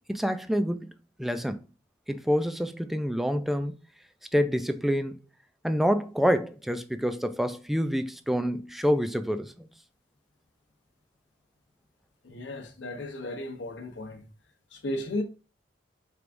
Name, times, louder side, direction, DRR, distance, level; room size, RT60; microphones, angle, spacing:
voice 1, 0.1-0.9 1.2-1.6 2.1-3.7 4.3-5.2 5.6-9.7, equal, ahead, 0.3 m, -27 dB
voice 2, 12.2-14.2 14.7-15.2, left 1 dB, 75° left, 0.8 m, -34 dB
4.6 x 3.4 x 2.5 m
head